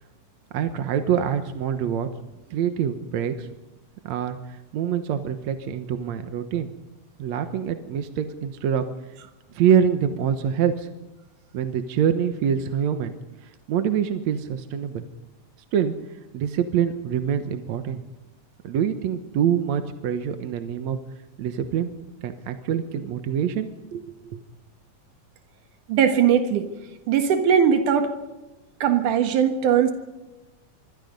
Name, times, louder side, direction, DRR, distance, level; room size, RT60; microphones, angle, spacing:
voice 1, 0.5-2.1 2.5-3.5 4.0-6.7 7.2-8.8 9.5-10.9 11.5-13.1 13.7-15.0 15.7-15.9 16.3-18.0 18.6-21.0 21.4-21.9 22.2-24.4, right 8 dB, 65° right, 8 dB, 2.3 m, -25 dB
voice 2, 25.9-26.7 27.1-28.1 28.8-29.9, right 8 dB, 90° right, 7 dB, 3.1 m, -19 dB
26.0 x 24.0 x 5.3 m, 1.1 s
omnidirectional pair, 3.5 m